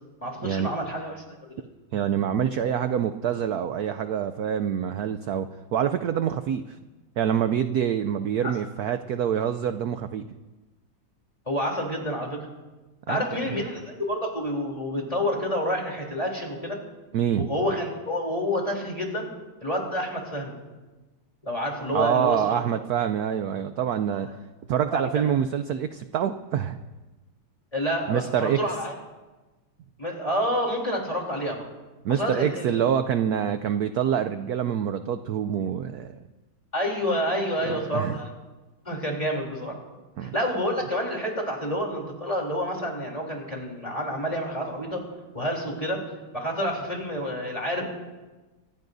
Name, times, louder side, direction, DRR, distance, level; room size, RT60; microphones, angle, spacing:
voice 1, 0.2-1.2 1.4-1.5 8.4-8.5 11.5-12.5 13.1-16.8 17.4-19.3 19.6-20.5 21.4-22.6 24.1-24.2 24.9-25.3 27.7-28.9 30.0-31.6 32.1-32.7 36.7-38.3 38.8-39.8 40.2-45.0 45.3-46.0 46.3-47.8, equal, 15° left, -1 dB, 3.2 m, -28 dB
voice 2, 1.9-6.8 7.2-10.3 13.1-13.3 17.1-17.5 21.9-24.3 24.7-26.8 28.1-28.6 32.0-36.2 37.7-38.2 40.2-40.3, right 9 dB, 80° right, 10 dB, 0.8 m, -26 dB
25.5 x 16.5 x 2.6 m, 1.2 s
omnidirectional pair, 2.3 m